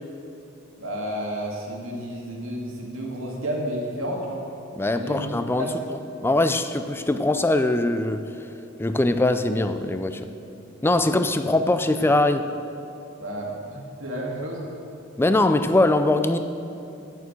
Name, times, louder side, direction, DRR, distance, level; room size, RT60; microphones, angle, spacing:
voice 1, 0.8-4.4 4.9-5.2 5.6-5.8 13.2-14.7, right 1 dB, 75° right, -2 dB, 2.0 m, -31 dB
voice 2, 4.8-5.7 6.2-8.2 8.8-10.2 10.8-12.4 15.2-16.4, left 2 dB, 10° left, 9 dB, 0.4 m, -21 dB
8.3 x 6.9 x 7.7 m, 2.9 s
head